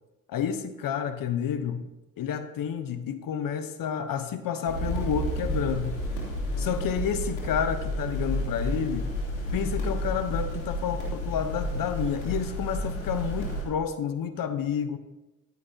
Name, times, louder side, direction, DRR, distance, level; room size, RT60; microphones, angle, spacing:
voice 1, 0.3-1.9 2.2-6.0 6.6-9.1 9.5-15.0, left 8 dB, 60° left, 10 dB, 1.0 m, -30 dB
sound 1, 4.7-13.6, equal, 90° left, 3.3 m, -31 dB
14.0 x 11.0 x 2.8 m, 1.0 s
hypercardioid pair, 60°, 39 cm